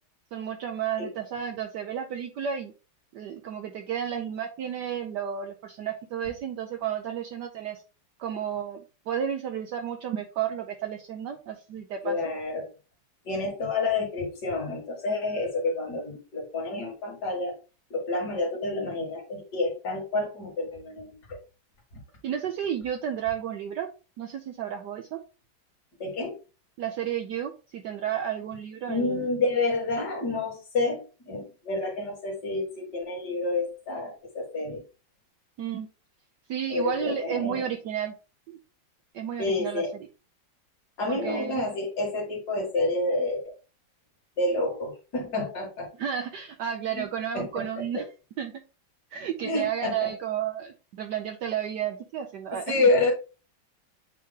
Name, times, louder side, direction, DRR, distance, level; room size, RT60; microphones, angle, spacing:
voice 1, 0.3-2.7 3.1-7.8 8.2-12.2 22.2-23.9 24.2-25.2 26.8-29.3 35.6-35.9 36.5-38.1 38.5-38.6 39.1-39.8 41.1-41.6 46.0-48.0 48.4-48.5 49.1-52.8, right 9 dB, 70° right, 4 dB, 1.2 m, -32 dB
voice 2, 12.0-12.7 13.2-17.6 17.9-21.4 26.0-26.3 28.9-34.8 36.7-37.7 39.4-39.9 41.0-43.5 44.4-45.9 46.9-47.0 47.3-48.0 49.4-50.1 52.7-53.1, left 2 dB, 55° left, 0 dB, 2.5 m, -29 dB
8.5 x 3.1 x 3.6 m, 0.33 s
omnidirectional pair, 2.0 m